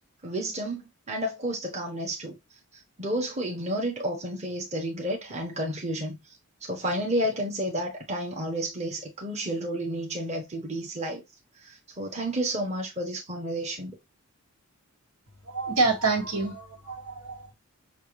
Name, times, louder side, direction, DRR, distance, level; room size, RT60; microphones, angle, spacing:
voice 1, 0.2-2.4 3.0-6.2 6.6-11.2 11.6-14.0, right 1 dB, 30° right, 1.1 m, -31 dB
voice 2, 15.4-17.5, right 3 dB, 85° right, 1.7 m, -27 dB
6.5 x 2.4 x 3.1 m
head